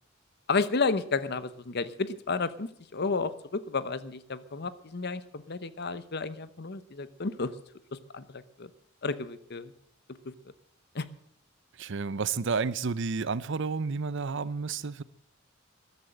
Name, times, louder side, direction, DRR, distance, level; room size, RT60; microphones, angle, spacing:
voice 1, 0.5-7.5 7.9-8.7 9.0-9.7 10.2-10.3 10.9-11.1, left 4 dB, 55° left, 1.0 m, -32 dB
voice 2, 11.8-15.0, right 4 dB, 60° right, 0.7 m, -31 dB
14.0 x 11.5 x 7.7 m
head